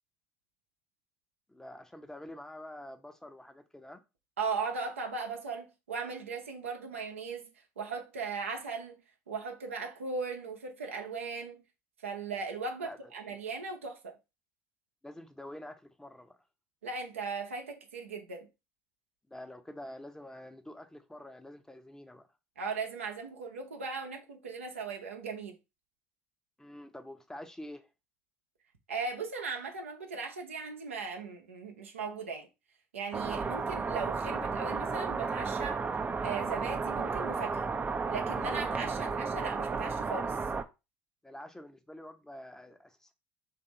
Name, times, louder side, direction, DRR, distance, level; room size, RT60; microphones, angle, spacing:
voice 1, 1.5-4.0 12.8-13.1 15.0-16.4 19.3-22.3 26.6-27.9 38.8-39.0 41.2-43.1, left 1 dB, 10° left, 0.7 m, -47 dB
voice 2, 4.4-7.5 7.8-9.0 9.3-11.6 12.0-14.2 16.8-18.5 22.6-25.6 28.9-32.5 32.9-35.8 36.2-37.7 38.1-40.4, right 4 dB, 85° right, 0.8 m, -38 dB
sound 1, 33.1-40.6, right 4 dB, 25° right, 0.5 m, -33 dB
3.4 x 2.7 x 4.1 m
hypercardioid pair, 65°, 7 cm